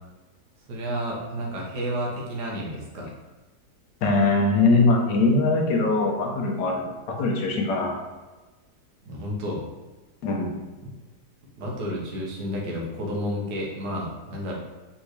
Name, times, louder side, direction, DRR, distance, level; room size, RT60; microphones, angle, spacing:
voice 1, 0.7-3.1 9.0-9.6 10.8-10.9 11.6-14.6, equal, 80° right, -2 dB, 1.6 m, -31 dB
voice 2, 4.0-8.0 10.2-10.6, left 3 dB, 80° left, 0 dB, 1.4 m, -22 dB
4.2 x 3.6 x 3.1 m, 1.2 s
omnidirectional pair, 1.8 m